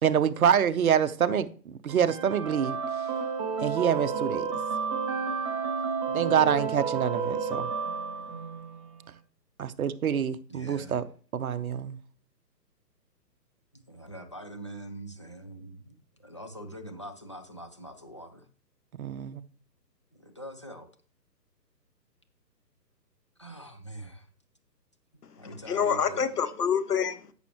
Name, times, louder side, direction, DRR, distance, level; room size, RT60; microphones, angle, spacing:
voice 1, 0.0-2.8 3.6-4.5 6.1-7.7 9.6-11.0 11.3-12.0 19.0-19.4, right 8 dB, 55° right, 0.9 m, -26 dB
sound 1, 1.9-8.9, right 5 dB, 15° right, 1.0 m, -31 dB
voice 2, 10.5-11.0 13.9-18.5 20.1-20.9 23.4-24.3 25.4-26.2, right 1 dB, 20° left, 0.4 m, -43 dB
voice 3, 25.2-27.3, left 7 dB, 65° left, 1.5 m, -28 dB
13.5 x 6.5 x 3.0 m
figure-of-eight pair, 145°, 50 cm